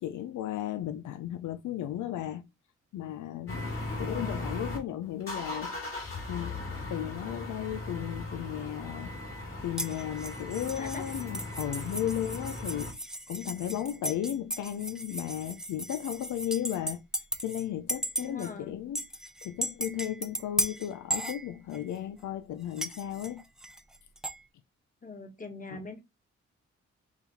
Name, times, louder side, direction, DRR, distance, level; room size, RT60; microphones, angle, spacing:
voice 1, 0.0-2.4 2.9-3.7 4.0-5.8 6.3-6.6 6.9-9.1 9.6-13.0 13.3-17.0 17.4-19.0 19.4-23.4 25.7-25.8, left 11 dB, 90° left, 0.5 m, -35 dB
sound 1, 3.5-4.8 5.2-12.9, left 2 dB, 45° left, 2.4 m, -38 dB
voice 2, 4.0-4.5 10.8-11.1 18.2-18.8 25.0-26.0, left 3 dB, 30° left, 1.5 m, -43 dB
sound 2, 9.8-17.6 17.9-18.5 19.0-22.0 22.8-24.4, right 1 dB, ahead, 0.6 m, -36 dB
4.0 x 2.9 x 4.1 m
cardioid pair, 65°, 29 cm